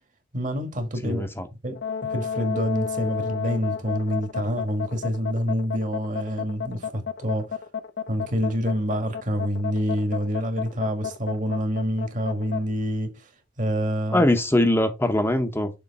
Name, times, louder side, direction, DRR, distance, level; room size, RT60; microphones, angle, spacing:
voice 1, 0.3-1.3 1.6-1.8 2.1-7.6 8.1-13.2 13.6-14.3, equal, 45° right, 1.6 m, -27 dB
voice 2, 1.0-1.5 14.1-15.7, left 1 dB, 15° left, 0.7 m, -22 dB
sound 1, 1.8-12.6, left 7 dB, 80° left, 0.7 m, -31 dB
6.9 x 3.1 x 5.2 m
head